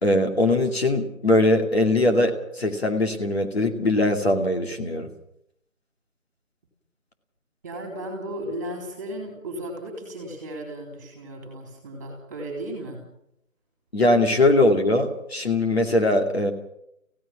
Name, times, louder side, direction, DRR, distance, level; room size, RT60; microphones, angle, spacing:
voice 1, 0.0-5.1 13.9-16.5, left 1 dB, 50° left, 3 dB, 2.6 m, -21 dB
voice 2, 7.6-13.0, right 1 dB, 15° right, 1 dB, 3.7 m, -35 dB
28.0 x 16.5 x 6.1 m, 0.76 s
figure-of-eight pair, 170°, 40 cm